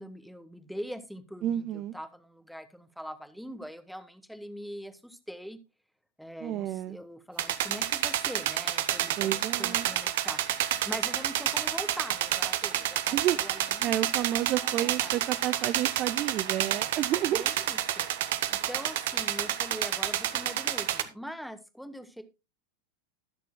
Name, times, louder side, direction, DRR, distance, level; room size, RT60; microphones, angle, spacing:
voice 1, 0.0-5.6 6.2-15.1 17.3-18.1 18.5-22.2, equal, ahead, 11 dB, 1.0 m, -42 dB
voice 2, 1.4-1.9 6.4-7.0 9.2-9.9 13.1-13.4 13.8-17.4, right 12 dB, 35° right, 14 dB, 0.4 m, -30 dB
sound 1, 7.4-21.0, right 12 dB, 55° right, 0.8 m, -30 dB
19.5 x 6.7 x 2.2 m, 0.28 s
figure-of-eight pair, 90°, 0 cm